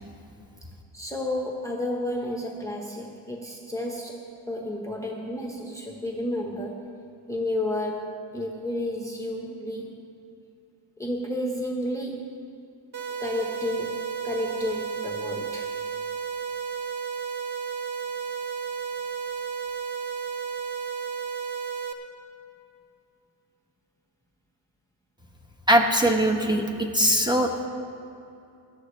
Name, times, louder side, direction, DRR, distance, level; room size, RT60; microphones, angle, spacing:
voice 1, 0.9-6.9 7.3-8.1 8.3-9.9 11.0-12.4 13.2-15.7, left 1 dB, 5° left, -1 dB, 1.3 m, -31 dB
sound 1, 12.9-21.9, right 6 dB, 55° right, 1.1 m, -33 dB
voice 2, 25.7-27.7, equal, 10° right, 2 dB, 1.4 m, -21 dB
18.0 x 12.5 x 3.3 m, 2.6 s
cardioid pair, 75°, 49 cm